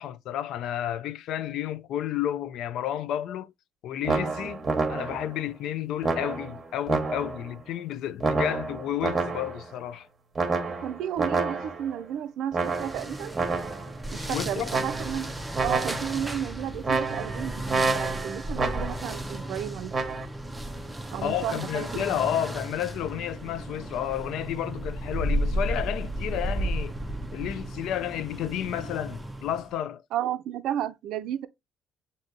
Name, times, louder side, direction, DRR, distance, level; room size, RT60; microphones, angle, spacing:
voice 1, 0.0-3.5 3.8-10.1 14.1-14.7 21.2-26.9 27.3-30.0, left 11 dB, 70° left, 0.3 m, -31 dB
sound 1, 4.0-5.4 6.0-7.5 8.2-9.7 10.4-12.0 12.5-14.0 14.7-15.3 15.5-16.3 16.8-19.2 19.9-20.3, right 3 dB, 20° right, 0.9 m, -29 dB
voice 2, 10.8-13.4 14.1-15.3 15.6-20.1 21.1-22.2 30.1-31.5, right 10 dB, 70° right, 0.4 m, -33 dB
sound 2, 12.6-29.7, right 1 dB, 5° right, 0.4 m, -34 dB
7.2 x 2.7 x 2.5 m
cardioid pair, 165°, 0 cm